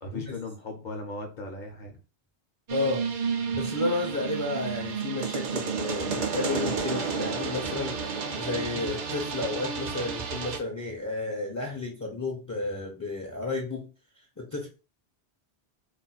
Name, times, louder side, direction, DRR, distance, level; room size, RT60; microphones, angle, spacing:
voice 1, 0.0-2.0, left 2 dB, 55° left, 3 dB, 0.7 m, -37 dB
voice 2, 2.7-3.0 3.5-13.9 14.4-14.7, left 2 dB, 25° left, 1 dB, 0.4 m, -32 dB
sound 1, 2.7-10.6, right 5 dB, 55° right, 0.5 m, -31 dB
2.4 x 2.1 x 3.9 m, 0.32 s
omnidirectional pair, 1.1 m